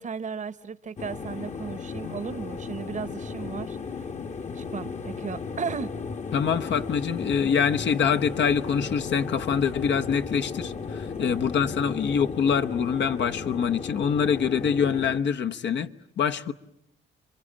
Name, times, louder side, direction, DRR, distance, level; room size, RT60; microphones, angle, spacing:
voice 1, 0.0-3.8 4.6-5.9 11.2-11.5, right 6 dB, 40° right, 0.9 m, -35 dB
sound 1, 1.0-15.2, left 5 dB, 35° left, 1.1 m, -35 dB
voice 2, 6.3-15.9 16.2-16.5, left 7 dB, 65° left, 1.0 m, -25 dB
29.0 x 23.5 x 8.6 m
cardioid pair, 90°, 20 cm